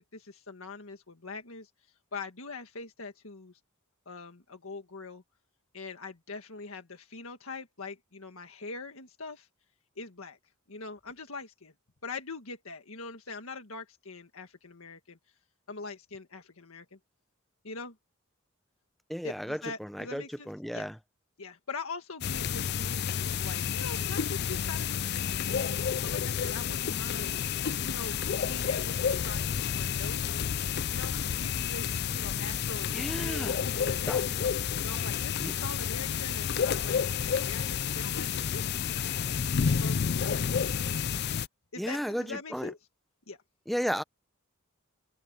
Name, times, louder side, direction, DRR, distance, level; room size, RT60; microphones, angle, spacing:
voice 1, 0.0-1.7 2.1-3.5 4.1-5.2 5.7-9.5 10.0-10.4 10.7-11.7 12.0-15.2 15.7-17.0 17.6-17.9 19.2-20.9 21.4-27.5 27.8-28.2 28.5-30.4 30.9-37.0 37.2-39.1 39.8-40.0 40.2-40.5 41.7-42.8 43.3-43.4, left 3 dB, 75° left, 1.8 m, -43 dB
voice 2, 19.1-20.9 32.9-33.6 34.1-34.2 35.4-35.5 41.8-42.7 43.7-44.0, equal, ahead, 0.8 m, -34 dB
sound 1, 22.2-41.5, left 7 dB, 50° left, 0.4 m, -30 dB
head